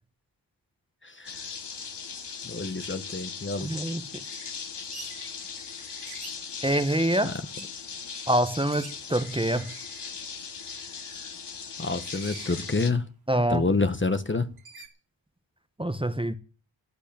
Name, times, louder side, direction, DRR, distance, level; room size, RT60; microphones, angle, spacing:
sound 1, 1.2-12.9, left 6 dB, 60° left, 1.7 m, -39 dB
voice 1, 2.4-3.7 7.2-7.3 11.8-13.1 13.5-14.5, left 3 dB, 25° left, 1.1 m, -28 dB
voice 2, 3.6-4.0 6.6-7.3 8.3-9.7 13.3-13.7 15.8-16.4, right 1 dB, 10° right, 1.1 m, -25 dB
sound 2, 4.3-6.4 6.7-7.0 7.4-11.3 11.8-13.0 13.4-13.5 14.6-14.9, right 5 dB, 55° right, 3.3 m, -48 dB
14.0 x 8.4 x 8.8 m
cardioid pair, 75°, 46 cm